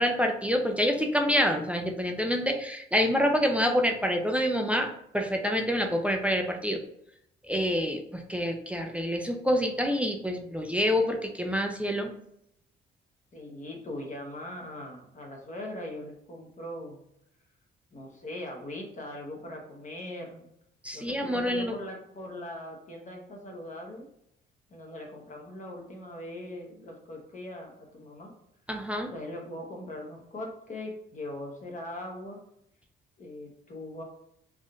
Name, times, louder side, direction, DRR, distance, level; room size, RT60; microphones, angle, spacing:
voice 1, 0.0-6.8 7.4-12.1 20.8-21.7 28.7-29.1, equal, 5° right, 3 dB, 0.3 m, -27 dB
voice 2, 13.3-17.0 17.9-20.5 20.9-24.1 24.7-28.3 29.1-32.4 33.2-34.0, left 1 dB, 40° left, 1 dB, 0.9 m, -40 dB
3.5 x 2.5 x 2.3 m, 0.75 s
cardioid pair, 90°, 20 cm